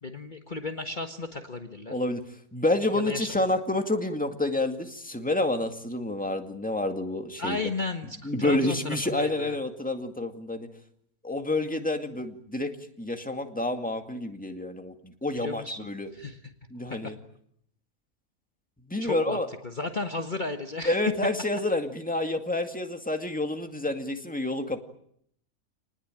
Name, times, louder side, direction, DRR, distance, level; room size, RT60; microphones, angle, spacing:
voice 1, 0.0-2.0 3.1-3.4 7.4-9.5 15.3-16.4 16.9-17.1 19.0-19.4 19.6-21.0, left 3 dB, 35° left, 5 dB, 1.6 m, -34 dB
voice 2, 1.9-2.2 2.5-7.6 8.2-10.7 11.2-12.7 13.0-16.1 16.7-17.2 18.9-19.5 20.8-24.8, left 2 dB, 5° left, 6 dB, 2.1 m, -28 dB
29.0 x 20.0 x 9.1 m, 0.70 s
omnidirectional pair, 1.5 m